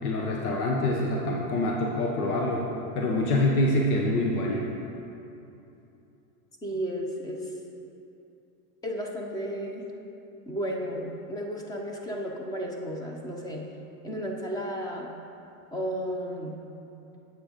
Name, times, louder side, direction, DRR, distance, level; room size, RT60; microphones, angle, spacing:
voice 1, 0.0-2.7 2.9-4.7, left 1 dB, 85° left, -1 dB, 1.2 m, -25 dB
voice 2, 6.6-7.5 8.8-9.8 10.5-13.6 14.0-15.1 15.7-16.5, equal, 10° left, 1 dB, 0.6 m, -33 dB
8.0 x 7.6 x 5.2 m, 2.8 s
supercardioid pair, 150°, 44 cm